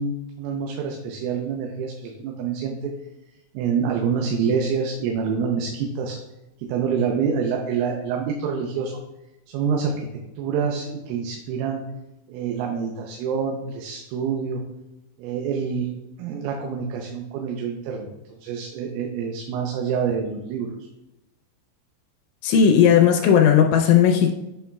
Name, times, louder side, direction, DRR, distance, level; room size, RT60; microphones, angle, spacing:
voice 1, 0.0-2.9 3.6-6.2 6.6-9.0 9.5-10.1 10.4-11.8 12.3-14.6 15.2-15.9 16.2-20.7, right 6 dB, 90° right, 2 dB, 3.4 m, -26 dB
voice 2, 22.4-24.3, left 8 dB, 80° left, 2 dB, 2.9 m, -16 dB
8.4 x 7.0 x 2.3 m, 0.97 s
omnidirectional pair, 5.7 m